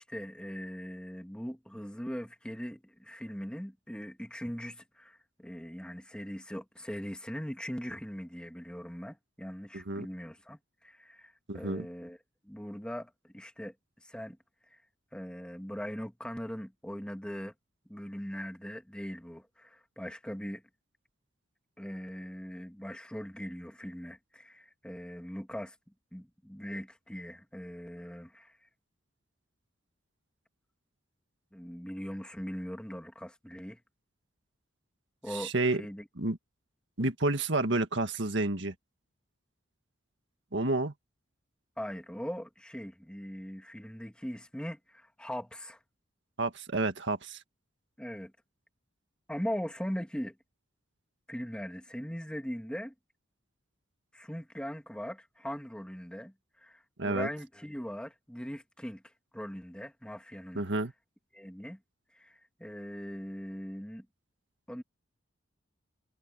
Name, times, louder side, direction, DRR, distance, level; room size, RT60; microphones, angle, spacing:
voice 1, 0.0-12.2 12.4-13.7 14.0-14.4 14.7-14.8 15.1-17.5 17.9-20.6 21.8-25.8 26.1-28.6 31.5-33.8 35.2-36.1 41.8-45.8 48.0-48.3 49.3-50.4 51.3-52.9 54.1-60.6 61.3-61.8 62.1-64.1 64.7-64.8, equal, 5° left, 2.0 m, -40 dB
voice 2, 9.7-10.1 11.5-11.9 35.3-35.8 36.2-36.4 37.0-38.7 40.5-40.9 46.4-47.4 57.0-57.3 60.6-60.9, right 2 dB, 60° right, 1.9 m, -30 dB
head